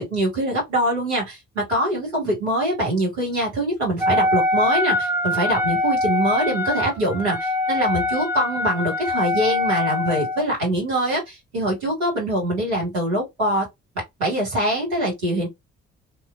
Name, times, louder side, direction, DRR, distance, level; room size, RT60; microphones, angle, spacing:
voice 1, 0.0-13.7 14.2-15.5, right 1 dB, 75° right, 1.2 m, -23 dB
Wind instrument woodwind instrument, 4.0-10.5, left 2 dB, 5° right, 0.6 m, -23 dB
3.0 x 2.1 x 2.4 m
figure-of-eight pair, 40°, 34 cm